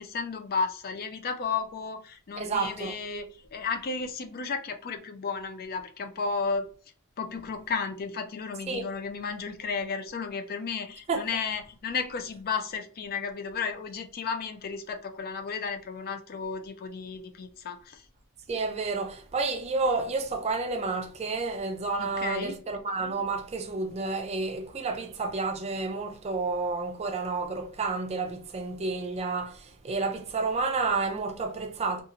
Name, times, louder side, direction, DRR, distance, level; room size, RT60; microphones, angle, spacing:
voice 1, 0.0-3.3 3.5-6.7 7.2-18.0 22.0-22.6, left 5 dB, 45° left, 0.4 m, -33 dB
voice 2, 2.4-2.9 8.7-8.9 11.1-11.3 18.5-32.0, right 3 dB, 30° right, 0.4 m, -30 dB
2.6 x 2.4 x 2.8 m
head